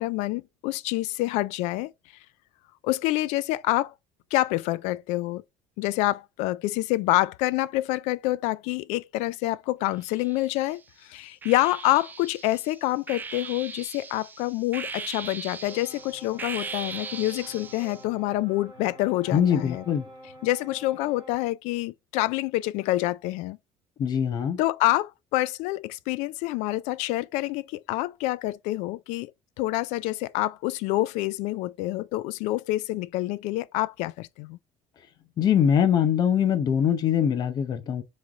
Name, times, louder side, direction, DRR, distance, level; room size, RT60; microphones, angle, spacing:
voice 1, 0.0-1.9 2.8-3.9 4.3-5.4 5.8-19.8 20.4-23.6 24.6-29.3 29.6-34.6, left 17 dB, 75° left, 0.4 m, -27 dB
sound 1, 10.0-10.8 11.4-18.0, right 5 dB, 15° right, 0.3 m, -39 dB
sound 2, 15.6-21.5, right 1 dB, 35° right, 2.1 m, -47 dB
voice 2, 19.3-20.1 24.0-24.6 35.4-38.0, left 8 dB, 35° left, 0.7 m, -22 dB
3.8 x 3.2 x 4.1 m
cardioid pair, 170°, 12 cm